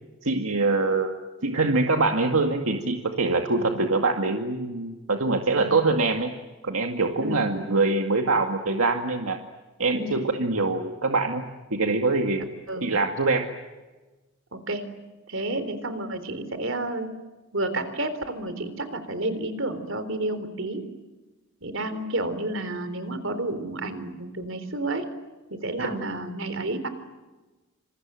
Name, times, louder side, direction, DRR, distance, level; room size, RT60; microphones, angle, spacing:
voice 1, 0.2-1.1 1.4-6.3 6.6-9.4 9.8-12.5 12.8-13.5 25.8-26.2, right 3 dB, 80° right, 4 dB, 2.2 m, -24 dB
voice 2, 7.2-7.7 9.9-10.2 12.7-12.9 14.5-14.9 15.3-17.1 17.5-20.8 21.6-25.0 25.5-26.9, right 2 dB, 60° right, 11 dB, 3.8 m, -30 dB
28.0 x 27.5 x 7.7 m, 1.2 s
head